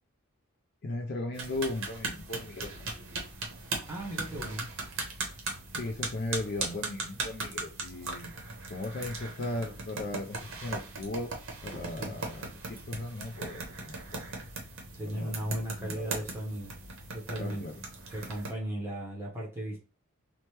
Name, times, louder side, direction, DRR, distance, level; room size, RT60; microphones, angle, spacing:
voice 1, 0.8-2.8 5.7-8.3 8.7-11.3 11.6-14.4 15.0-16.3 17.4-17.8, left 2 dB, 45° left, 0.4 m, -37 dB
sound 1, 1.3-18.5, right 3 dB, 60° right, 0.7 m, -39 dB
voice 2, 3.9-4.7 12.0-12.2 15.0-16.7 17.1-17.6 18.1-19.8, right 1 dB, 10° right, 0.8 m, -36 dB
2.9 x 2.1 x 3.1 m
head